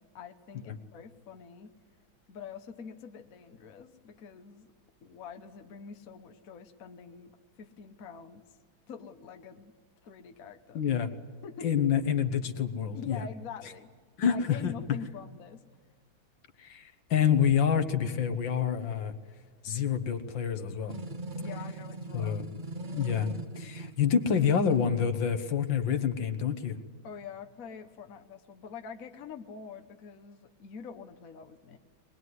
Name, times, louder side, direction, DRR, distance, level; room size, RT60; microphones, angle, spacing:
voice 1, 0.0-1.7 2.3-4.7 5.0-8.4 8.9-9.7 10.0-10.8 11.4-11.7 12.9-13.9 14.3-15.6 21.4-22.4 27.0-31.8, left 6 dB, 50° left, 6 dB, 1.3 m, -45 dB
voice 2, 10.7-11.1 11.6-13.3 14.2-14.7 16.6-19.1 19.6-21.0 22.1-22.4 22.9-26.8, left 8 dB, 70° left, 10 dB, 1.9 m, -27 dB
sound 1, 20.9-24.9, right 1 dB, 55° right, 0.5 m, -39 dB
22.0 x 21.0 x 9.6 m, 1.5 s
omnidirectional pair, 2.2 m